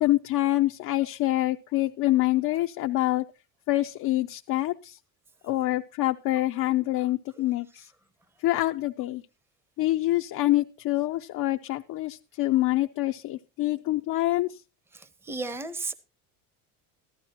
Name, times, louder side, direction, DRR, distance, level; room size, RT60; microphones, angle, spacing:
voice 1, 0.0-3.2 3.7-5.0 5.4-7.9 8.4-9.2 9.8-14.6, left 16 dB, 45° left, 4 dB, 0.5 m, -26 dB
voice 2, 14.9-15.9, right 3 dB, 5° right, 14 dB, 0.7 m, -34 dB
14.5 x 12.0 x 2.8 m, 0.30 s
cardioid pair, 115°, 44 cm